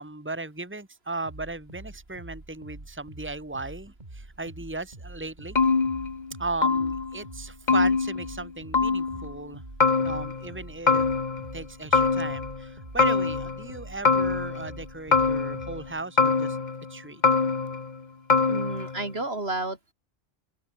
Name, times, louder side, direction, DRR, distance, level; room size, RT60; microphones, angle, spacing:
voice 1, 0.0-5.6 6.4-9.6 10.0-11.1 11.5-16.6 16.9-17.2, right 3 dB, 10° right, 2.2 m, -36 dB
sound 1, 1.2-16.0, right 2 dB, 40° right, 3.8 m, -46 dB
sound 2, 5.6-6.4 6.6-7.2 7.7-8.5 8.7-9.3 9.8-10.6 10.9-11.6 11.9-12.7 13.0-13.7 14.1-14.8 15.1-15.9 16.2-16.9 17.2-18.0 18.3-19.0, left 4 dB, 45° left, 1.5 m, -24 dB
voice 2, 18.5-19.9, right 2 dB, 65° right, 4.2 m, -31 dB
omnidirectional pair, 1.1 m